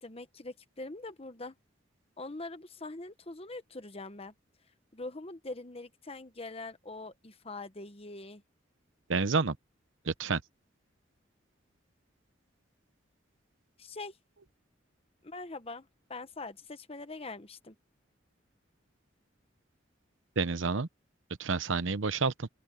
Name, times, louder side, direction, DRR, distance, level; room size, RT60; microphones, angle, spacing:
voice 1, 0.0-1.5 2.2-4.3 4.9-8.4 13.8-14.2 15.2-17.7, left 2 dB, 30° left, 1.1 m, -43 dB
voice 2, 9.1-9.6 10.1-10.4 20.4-20.9 21.4-22.5, right 4 dB, 80° right, 0.9 m, -29 dB
open air
head